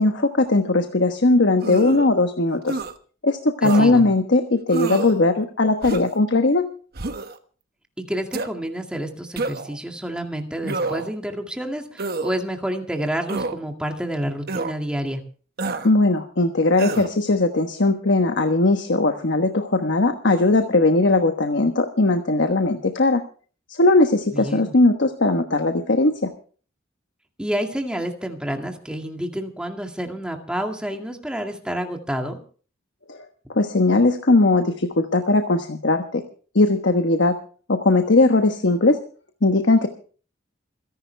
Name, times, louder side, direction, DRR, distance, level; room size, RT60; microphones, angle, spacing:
voice 1, 0.0-2.8 3.2-6.7 15.8-23.2 23.7-26.3 33.1-33.2 33.5-36.2 36.5-37.4 37.7-39.0 39.4-39.9, left 2 dB, 65° left, 6 dB, 1.2 m, -19 dB
sound 1, 1.6-2.1 2.7-2.9 3.6-3.9 4.7-5.2 5.8-6.2 6.9-7.4 8.3-8.5 9.4-9.8 10.6-11.1 12.0-12.3 13.3-13.6 14.5-14.7 15.6-15.9 16.8-17.1, right 3 dB, 55° right, 1.2 m, -28 dB
voice 2, 3.6-4.0 8.0-15.2 24.3-24.7 27.4-32.4, equal, 5° right, 3 dB, 2.1 m, -29 dB
27.0 x 11.0 x 3.4 m, 0.41 s
head